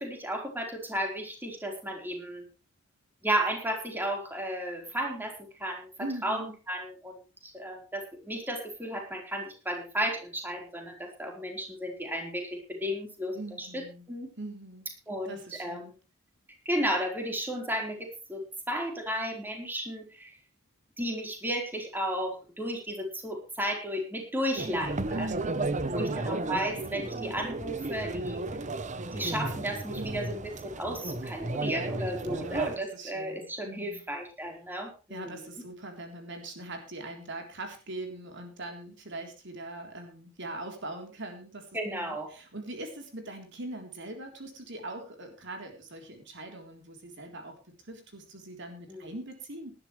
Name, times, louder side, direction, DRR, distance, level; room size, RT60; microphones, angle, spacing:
voice 1, 0.0-2.5 3.2-5.9 6.2-7.2 7.4-14.3 15.1-15.8 16.6-20.4 21.0-28.4 29.1-35.3 41.7-42.3 48.9-49.1, equal, 10° right, 2 dB, 4.4 m, -34 dB
voice 2, 6.0-6.6 13.3-14.1 14.4-14.9 15.3-15.9 25.1-26.3 30.0-30.4 32.2-34.0 35.1-49.7, right 2 dB, 60° right, 4 dB, 3.8 m, -42 dB
sound 1, 24.5-32.8, right 2 dB, 35° right, 1.0 m, -33 dB
19.0 x 12.0 x 3.3 m, 0.32 s
head